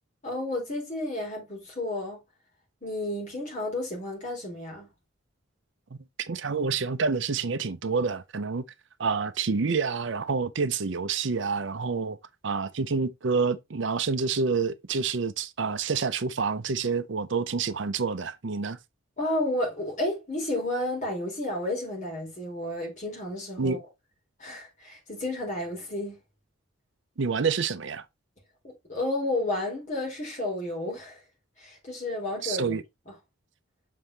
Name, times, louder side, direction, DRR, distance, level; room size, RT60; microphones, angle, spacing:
voice 1, 0.2-2.2 2.8-4.9 19.2-23.8 24.4-26.2 28.6-31.2 31.6-32.8 33.1-33.2, left 1 dB, 35° left, 4.2 m, -32 dB
voice 2, 5.9-8.7 9.0-12.2 12.4-18.8 23.6-23.8 27.2-28.1 32.4-32.8, right 5 dB, 60° right, 0.6 m, -28 dB
7.5 x 5.4 x 3.3 m
head